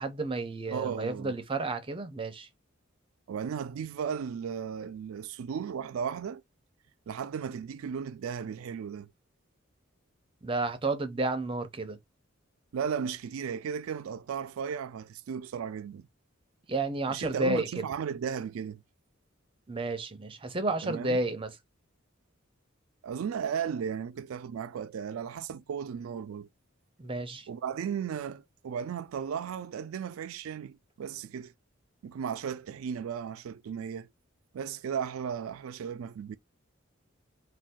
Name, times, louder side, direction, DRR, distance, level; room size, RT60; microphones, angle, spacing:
voice 1, 0.0-2.5 10.4-12.0 16.7-17.9 19.7-21.5 27.0-27.5, right 2 dB, 25° right, 0.6 m, -31 dB
voice 2, 0.7-1.4 3.3-6.4 7.1-9.1 12.7-16.1 17.1-18.8 20.8-21.2 23.0-26.5 27.5-31.5 32.0-34.1 34.5-36.4, right 7 dB, 85° right, 0.3 m, -35 dB
2.6 x 2.3 x 3.6 m
head